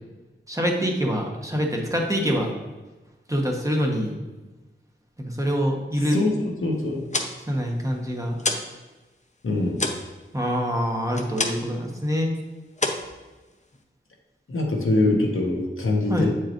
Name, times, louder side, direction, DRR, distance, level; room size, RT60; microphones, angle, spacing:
voice 1, 0.5-2.5 3.3-4.2 5.2-6.2 7.5-8.4 10.3-12.3 16.1-16.3, equal, 15° right, 0 dB, 1.1 m, -25 dB
voice 2, 6.1-7.1 9.4-9.9 14.5-16.3, left 2 dB, 85° left, 0 dB, 1.1 m, -23 dB
sound 1, 6.9-8.8 9.1-11.8 12.1-12.4 12.7-13.8, left 2 dB, 35° left, 0.7 m, -29 dB
7.9 x 4.7 x 3.0 m, 1.2 s
wide cardioid pair, 60°, 21 cm